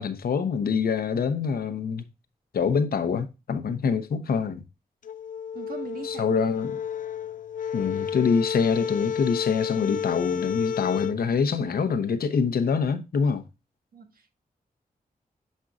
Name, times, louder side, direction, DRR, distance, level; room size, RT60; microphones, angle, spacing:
voice 1, 0.0-2.0 2.5-4.6 6.0-6.8 7.7-13.4, left 5 dB, 85° left, 0.9 m, -25 dB
sound 1, 5.0-11.2, left 7 dB, 60° left, 0.4 m, -31 dB
voice 2, 5.5-6.4 13.9-14.3, right 5 dB, 75° right, 1.5 m, -40 dB
7.4 x 5.4 x 2.5 m
wide cardioid pair, 95°, 15 cm